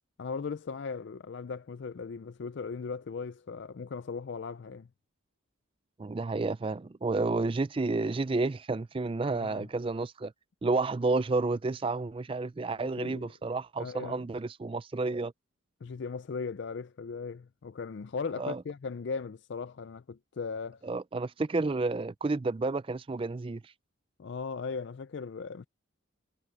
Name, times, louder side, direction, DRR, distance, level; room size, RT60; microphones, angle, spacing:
voice 1, 0.2-4.9 9.2-9.7 12.8-13.3 13.8-14.2 15.8-20.8 24.2-25.7, left 5 dB, 55° left, 0.4 m, -38 dB
voice 2, 6.0-10.3 10.6-15.3 18.4-18.6 20.8-23.7, right 3 dB, 25° right, 0.3 m, -31 dB
head